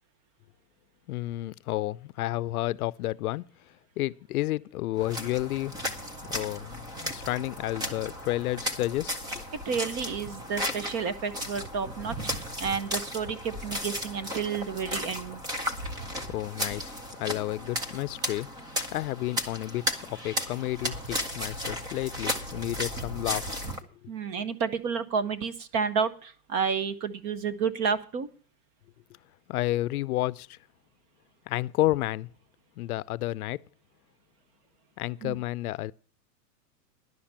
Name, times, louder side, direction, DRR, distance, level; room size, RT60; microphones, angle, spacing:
voice 1, 1.1-3.4 4.0-5.8 6.3-9.1 16.3-16.9 17.2-18.5 18.9-23.6 29.5-30.6 31.5-32.3 32.8-33.6 35.0-35.9, left 16 dB, 65° left, 0.6 m, -31 dB
sound 1, 5.0-23.8, equal, 10° right, 0.5 m, -35 dB
voice 2, 9.5-15.4 24.1-28.3 35.2-35.4, right 6 dB, 30° right, 0.8 m, -31 dB
11.0 x 5.8 x 8.7 m
supercardioid pair, 150°, 48 cm